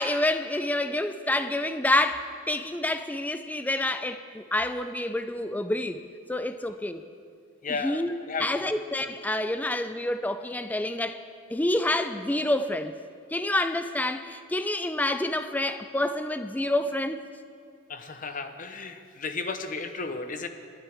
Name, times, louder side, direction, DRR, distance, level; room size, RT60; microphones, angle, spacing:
voice 1, 0.0-6.0 6.3-7.0 7.8-8.1 8.4-11.2 11.5-12.9 13.3-17.2, left 1 dB, 10° left, 9 dB, 0.4 m, -28 dB
voice 2, 7.6-8.8 17.9-20.5, left 4 dB, 40° left, 8 dB, 0.9 m, -34 dB
28.5 x 10.0 x 3.5 m, 2.4 s
head